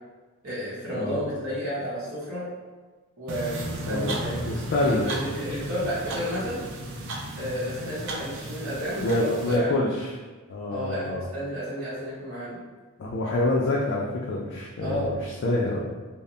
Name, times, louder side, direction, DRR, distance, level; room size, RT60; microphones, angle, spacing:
voice 1, 0.4-2.5 3.2-4.4 4.8-6.7 7.3-9.7 10.7-12.6 14.8-15.2, equal, 75° right, -10 dB, 0.9 m, -31 dB
sound 1, 3.3-9.6, right 1 dB, 60° right, 0.4 m, -35 dB
voice 2, 3.8-4.1 4.4-5.1 9.0-10.2 10.5-11.3 13.0-15.8, left 2 dB, 55° left, -4 dB, 0.3 m, -26 dB
2.1 x 2.0 x 3.6 m, 1.3 s
head